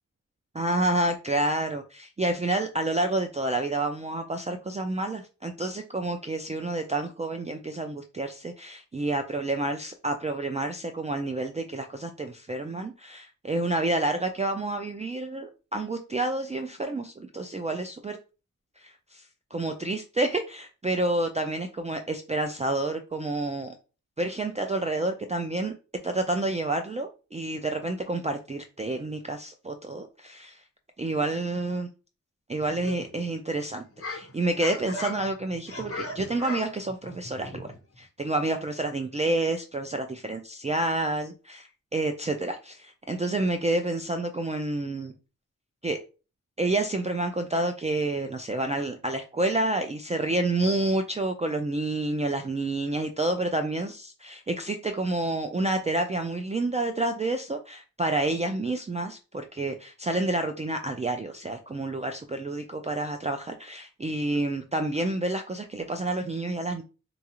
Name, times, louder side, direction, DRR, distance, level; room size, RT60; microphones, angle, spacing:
voice 1, 0.5-18.2 18.8-23.8 24.2-25.7 26.0-30.6 31.0-31.9 32.5-45.1 45.8-46.0 46.6-66.8, right 2 dB, 20° right, 5 dB, 0.3 m, -29 dB
sound 1, 32.6-33.3 33.7-38.0, left 2 dB, 45° left, 0.9 m, -38 dB
3.9 x 2.4 x 2.9 m, 0.33 s
wide cardioid pair, 75°, 32 cm